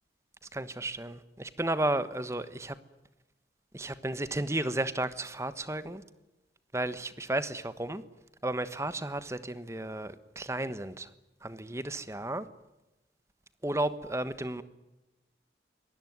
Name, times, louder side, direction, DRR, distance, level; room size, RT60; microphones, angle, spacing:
voice 1, 0.5-2.8 3.7-6.0 6.7-8.0 8.4-11.1 11.4-12.5 13.6-14.6, right 1 dB, 15° right, 13 dB, 1.3 m, -33 dB
24.5 x 19.5 x 9.5 m, 1.0 s
head